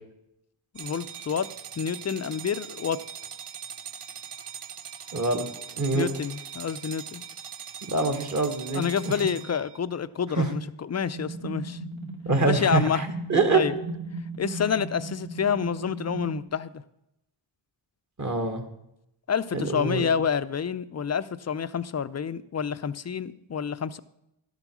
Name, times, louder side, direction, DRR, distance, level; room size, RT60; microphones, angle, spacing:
voice 1, 0.7-1.5 1.8-3.0 5.9-7.2 8.7-11.8 12.4-13.0 13.5-13.7 14.4-16.8 19.3-24.0, left 7 dB, 35° left, 14 dB, 0.5 m, -28 dB
sound 1, 0.8-9.8, right 8 dB, 85° right, 1.1 m, -41 dB
voice 2, 5.1-5.5 5.8-6.1 7.9-9.1 10.4-10.5 12.2-13.6 18.2-18.7 19.5-20.1, right 3 dB, 35° right, 6 dB, 1.5 m, -25 dB
sound 2, 11.1-16.4, right 2 dB, 70° right, 1.9 m, -37 dB
12.0 x 8.0 x 6.1 m, 0.84 s
wide cardioid pair, 110°, 49 cm